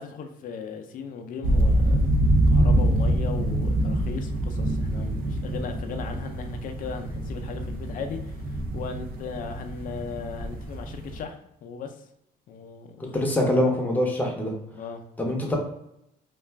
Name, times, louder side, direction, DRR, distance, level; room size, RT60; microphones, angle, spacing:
voice 1, 0.0-2.1 2.5-12.0 12.5-13.3 14.7-15.0, left 5 dB, 55° left, 5 dB, 0.4 m, -37 dB
sound 1, 1.4-11.2, right 1 dB, 60° right, 0.5 m, -25 dB
voice 2, 13.1-14.5 15.2-15.6, left 1 dB, 10° left, 0 dB, 0.7 m, -24 dB
2.4 x 2.3 x 3.2 m, 0.80 s
cardioid pair, 110°, 17 cm